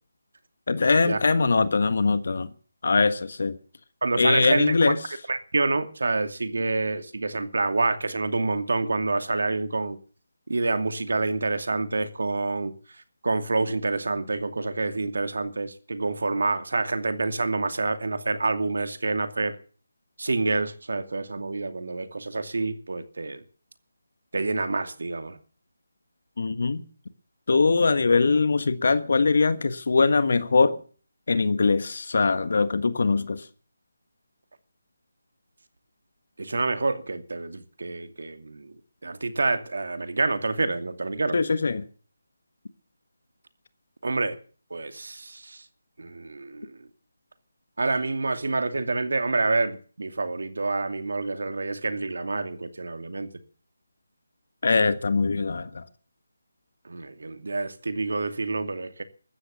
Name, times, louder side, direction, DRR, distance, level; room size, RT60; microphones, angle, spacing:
voice 1, 0.7-2.5 2.8-3.6 4.2-5.0 26.4-26.8 27.5-30.8 31.3-33.4 41.3-41.8 54.6-55.8, left 4 dB, 60° left, 1.5 m, -22 dB
voice 2, 4.0-4.9 5.3-10.0 10.5-12.7 13.2-19.6 20.2-23.4 24.3-25.4 36.4-38.7 39.0-41.4 44.0-44.4 44.7-45.6 46.0-46.8 47.8-53.3 56.8-59.0, right 3 dB, 70° right, 2.5 m, -27 dB
15.0 x 13.0 x 6.9 m
figure-of-eight pair, 160°, 0 cm